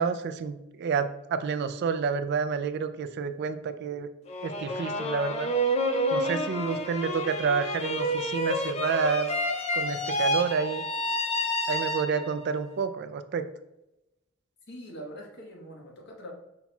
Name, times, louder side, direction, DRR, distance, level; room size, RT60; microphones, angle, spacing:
voice 1, 0.0-4.1 4.4-5.5 6.1-9.3 9.7-10.8 11.7-13.5, right 5 dB, 55° right, 10 dB, 0.3 m, -29 dB
sound 1, 4.3-12.5, equal, 30° left, 0.4 m, -29 dB
voice 2, 14.7-16.3, equal, 60° left, 0 dB, 1.1 m, -43 dB
5.7 x 2.3 x 4.1 m, 0.91 s
head